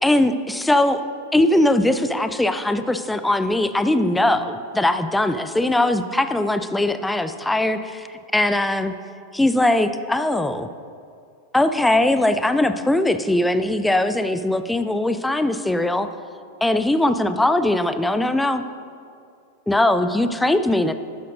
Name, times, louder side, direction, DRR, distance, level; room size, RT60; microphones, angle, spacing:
voice 1, 0.0-1.0 1.3-8.1 8.3-8.9 9.3-10.7 11.5-16.1 16.6-18.6 19.7-20.9, left 1 dB, 5° left, 10 dB, 0.4 m, -20 dB
12.0 x 11.5 x 2.6 m, 2.3 s
figure-of-eight pair, 90°, 0 cm